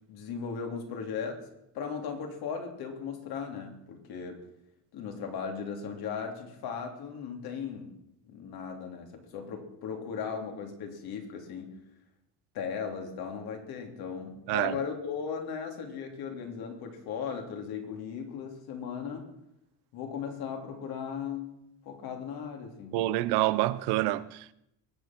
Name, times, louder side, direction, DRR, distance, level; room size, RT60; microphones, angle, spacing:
voice 1, 0.1-1.5 1.7-4.4 4.9-8.0 8.2-11.8 12.5-19.3 19.9-23.0, left 6 dB, 70° left, 3.3 m, -37 dB
voice 2, 22.9-24.5, right 16 dB, 85° right, 0.8 m, -27 dB
23.0 x 8.6 x 6.0 m
cardioid pair, 125°, 38 cm